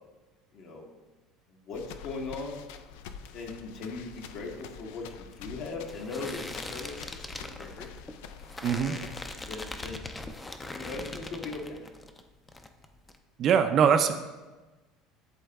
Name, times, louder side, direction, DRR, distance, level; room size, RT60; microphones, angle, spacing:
voice 1, 0.5-0.9 1.7-2.6 3.3-7.9 8.8-9.0 9.4-10.1 10.7-11.9, left 3 dB, 55° left, 0 dB, 1.3 m, -39 dB
sound 1, 1.7-9.4, left 7 dB, 85° left, 0.3 m, -46 dB
sound 2, 4.5-12.2 12.5-13.2, left 2 dB, 15° left, 0.4 m, -41 dB
voice 2, 8.6-9.0 13.4-14.1, right 7 dB, 45° right, 8 dB, 0.4 m, -22 dB
11.0 x 3.8 x 2.3 m, 1.2 s
supercardioid pair, 125°, 0 cm